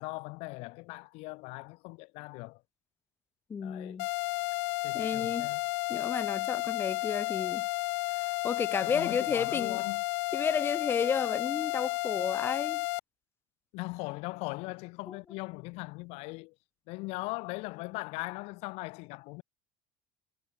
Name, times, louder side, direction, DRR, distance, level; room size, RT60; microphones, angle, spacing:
voice 1, 0.0-2.6 3.6-4.0 4.8-5.6 8.8-10.0 13.7-16.5 16.9-19.4, left 26 dB, 60° left, 2.3 m, -39 dB
voice 2, 3.5-4.1 4.9-5.5 5.9-7.7 8.2-9.8 10.3-12.9 15.1-15.2, left 6 dB, 20° left, 2.6 m, -32 dB
sound 1, 4.0-13.0, left 27 dB, 90° left, 3.3 m, -32 dB
cardioid pair, 165°, 12 cm